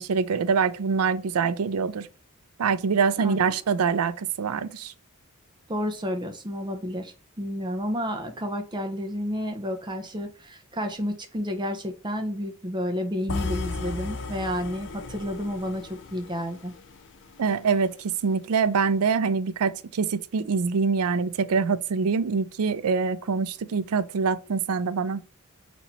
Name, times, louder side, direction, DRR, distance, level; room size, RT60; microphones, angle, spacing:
voice 1, 0.0-2.1 2.6-4.9 17.4-25.2, right 5 dB, 85° right, 0.4 m, -25 dB
voice 2, 5.7-16.7, equal, 20° right, 0.8 m, -31 dB
sound 1, 13.3-17.4, left 3 dB, 60° left, 0.6 m, -35 dB
4.4 x 2.8 x 4.2 m
head